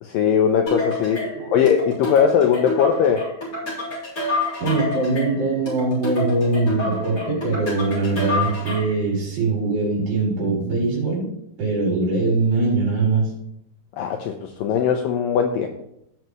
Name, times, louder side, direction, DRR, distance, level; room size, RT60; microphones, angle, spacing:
voice 1, 0.0-1.2 1.5-3.2 14.0-15.7, left 7 dB, 75° left, 4 dB, 2.2 m, -19 dB
sound 1, 0.7-9.0, left 2 dB, 20° left, 3.7 m, -28 dB
voice 2, 1.2-1.5 4.6-11.3 11.6-13.3, right 3 dB, 90° right, -6 dB, 5.6 m, -22 dB
17.0 x 5.8 x 3.1 m, 0.78 s
omnidirectional pair, 4.5 m